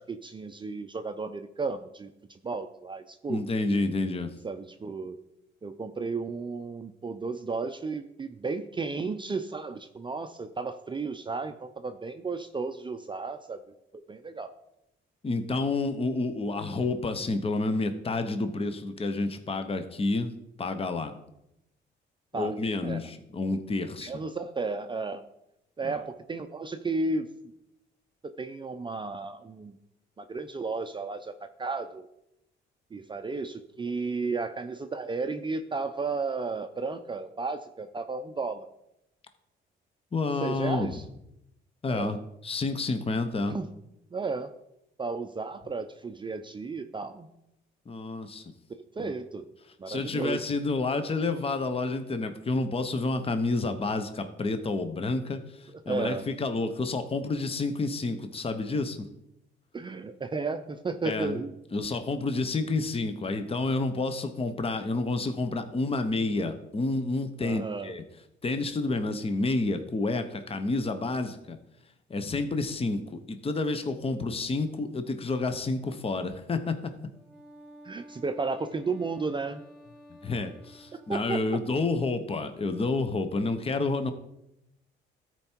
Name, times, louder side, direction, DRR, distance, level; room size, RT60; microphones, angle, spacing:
voice 1, 0.0-3.4 4.4-5.2 5.6-13.6 14.1-14.5 22.3-22.6 22.8-23.0 24.0-25.2 25.8-27.3 28.2-29.8 30.2-32.1 32.9-38.7 40.4-41.0 41.9-42.2 43.5-43.7 44.1-44.5 45.0-47.3 49.0-49.4 49.8-50.5 55.9-56.3 59.7-61.5 67.4-68.0 77.8-79.6 80.9-81.6, right 4 dB, 25° right, 8 dB, 0.5 m, -33 dB
voice 2, 3.3-4.3 15.2-20.3 20.6-21.1 22.3-24.1 25.8-25.9 40.1-40.9 41.8-42.2 42.4-43.6 47.9-48.4 49.0-49.1 49.9-59.1 61.0-61.4 61.7-68.0 68.4-71.6 72.1-76.8 80.2-84.1, left 3 dB, 30° left, 9 dB, 0.9 m, -29 dB
Wind instrument woodwind instrument, 77.1-81.8, equal, 5° right, 2.8 m, -51 dB
13.5 x 4.6 x 4.5 m, 0.84 s
cardioid pair, 90°, 20 cm